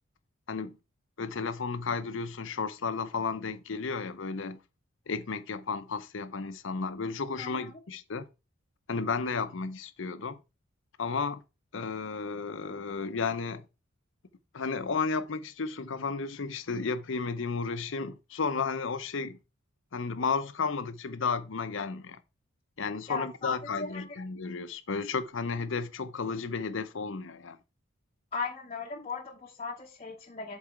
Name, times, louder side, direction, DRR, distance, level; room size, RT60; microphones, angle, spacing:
voice 1, 1.2-4.6 5.1-8.3 8.9-10.4 11.0-11.4 11.7-13.6 14.5-19.4 19.9-22.2 22.8-27.6, left 4 dB, 65° left, 0.7 m, -33 dB
voice 2, 7.4-7.7 23.1-24.2 28.3-30.6, left 4 dB, 30° left, 0.8 m, -37 dB
7.4 x 4.0 x 4.5 m
head